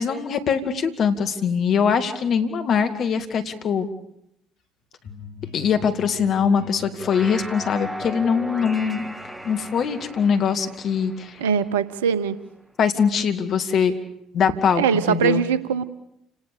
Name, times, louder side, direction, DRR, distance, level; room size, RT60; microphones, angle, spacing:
voice 1, 0.0-3.9 5.5-9.1 9.4-11.4 12.8-13.9 14.3-15.4, left 6 dB, 55° left, 8 dB, 2.4 m, -22 dB
sound 1, 5.0-10.7, left 7 dB, 70° left, 4.8 m, -44 dB
sound 2, 6.8-12.3, right 1 dB, ahead, 2.3 m, -37 dB
voice 2, 11.4-12.4 14.8-15.9, right 7 dB, 80° right, 17 dB, 1.0 m, -21 dB
29.5 x 19.0 x 7.0 m, 0.77 s
hypercardioid pair, 55°, 0 cm